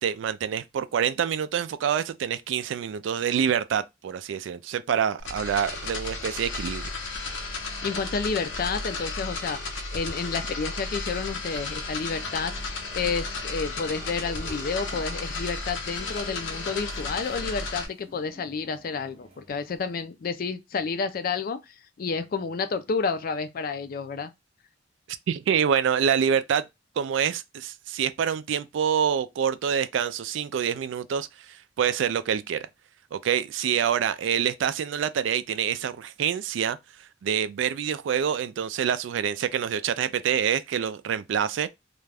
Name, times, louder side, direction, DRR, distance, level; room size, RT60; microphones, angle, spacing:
voice 1, 0.0-6.9 25.1-26.6 27.0-32.7 33.1-36.8 37.2-41.7, right 8 dB, 80° right, 0.3 m, -26 dB
sound 1, 5.2-17.9, left 3 dB, 80° left, 0.7 m, -34 dB
voice 2, 7.8-24.3, left 5 dB, 50° left, 0.4 m, -30 dB
sound 2, 11.3-20.0, equal, 30° right, 0.6 m, -50 dB
2.4 x 2.2 x 3.3 m
head